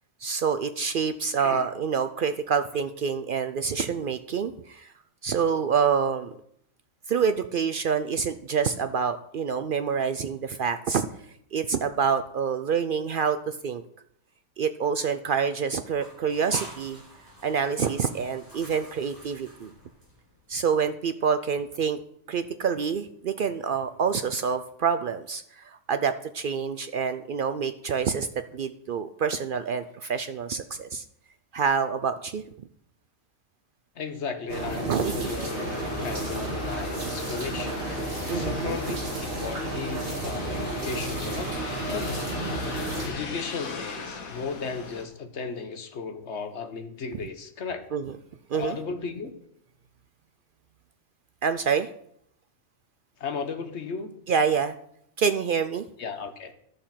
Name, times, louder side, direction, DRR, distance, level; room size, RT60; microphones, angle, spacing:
voice 1, 0.2-4.9 5.2-6.3 7.1-11.1 11.5-13.8 14.6-17.0 17.4-19.7 20.5-22.0 22.3-28.3 28.5-31.0 31.5-32.4 34.8-35.3 38.3-38.8 47.9-48.1 48.5-48.8 51.4-51.9 54.3-54.7 55.2-55.8, right 6 dB, 70° right, 10 dB, 0.5 m, -27 dB
sound 1, 15.9-20.5, right 1 dB, 15° right, 4.4 m, -47 dB
voice 2, 33.9-42.3 43.0-47.9 48.5-49.3 53.2-54.1 56.0-56.5, left 5 dB, 55° left, 8 dB, 1.3 m, -35 dB
sound 2, 34.5-43.1, right 1 dB, 40° right, 2.3 m, -32 dB
sound 3, 35.2-45.1, left 4 dB, 85° left, 1.6 m, -39 dB
11.5 x 6.7 x 5.7 m, 0.71 s
omnidirectional pair, 1.4 m